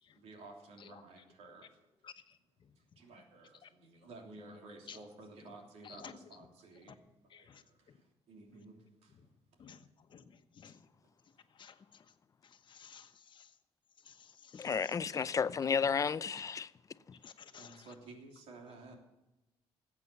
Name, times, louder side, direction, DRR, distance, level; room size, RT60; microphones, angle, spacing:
voice 1, 0.1-1.8 2.7-9.2 9.5-9.8 11.0-11.4 17.6-19.0, right 2 dB, 80° right, 3.2 m, -54 dB
voice 2, 2.0-2.7 3.6-3.7 4.9-5.0 5.8-6.1 7.3-8.0 9.6-10.8 11.5-12.0 12.4-13.5 14.0-15.4 17.2-17.9, left 7 dB, 50° left, 1.2 m, -55 dB
voice 3, 14.5-16.7, left 6 dB, 30° left, 0.5 m, -32 dB
19.0 x 8.6 x 6.9 m
cardioid pair, 130°, 11 cm